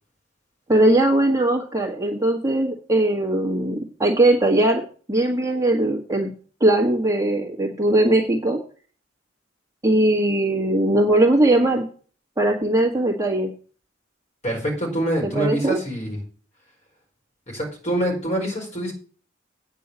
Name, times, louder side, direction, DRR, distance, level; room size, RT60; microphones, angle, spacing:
voice 1, 0.7-4.8 5.1-6.3 6.6-8.6 9.8-11.9 12.4-13.5 15.2-15.8, right 1 dB, 15° right, 0 dB, 1.6 m, -20 dB
voice 2, 14.4-16.2 17.5-18.9, right 1 dB, 35° left, 0 dB, 4.7 m, -25 dB
9.1 x 5.5 x 8.1 m, 0.42 s
head